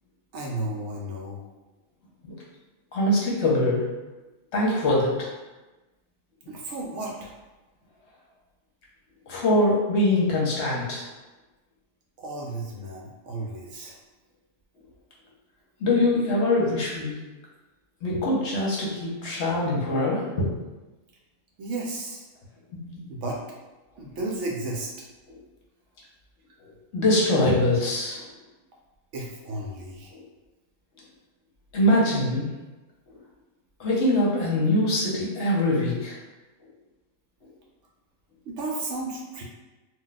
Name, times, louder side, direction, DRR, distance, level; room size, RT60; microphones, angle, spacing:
voice 1, 0.3-1.4 6.5-7.3 12.2-14.0 21.6-22.3 23.1-23.4 23.9-24.9 29.1-30.1 38.4-39.4, right 2 dB, 70° right, -2 dB, 0.8 m, -33 dB
voice 2, 2.9-3.8 4.5-5.3 9.3-11.1 15.8-17.1 18.0-20.5 22.8-23.0 26.9-28.2 30.1-30.2 31.7-32.5 33.8-36.2, left 1 dB, 60° left, -4 dB, 0.9 m, -23 dB
2.3 x 2.1 x 3.9 m, 1.1 s
omnidirectional pair, 1.4 m